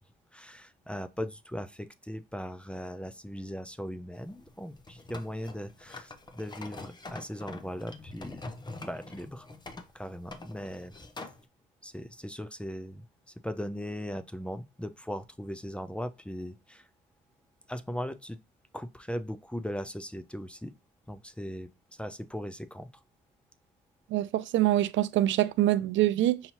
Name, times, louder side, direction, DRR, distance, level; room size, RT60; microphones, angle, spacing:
voice 1, 0.3-8.4 8.8-9.5 9.9-11.0 11.8-16.9 17.7-18.4 18.7-20.7 21.1-22.9, equal, 5° left, 0.4 m, -39 dB
sound 1, 4.2-11.4, left 2 dB, 20° left, 0.8 m, -45 dB
voice 2, 24.1-26.4, right 14 dB, 75° right, 0.4 m, -25 dB
5.6 x 2.7 x 2.9 m
cardioid pair, 90°, 20 cm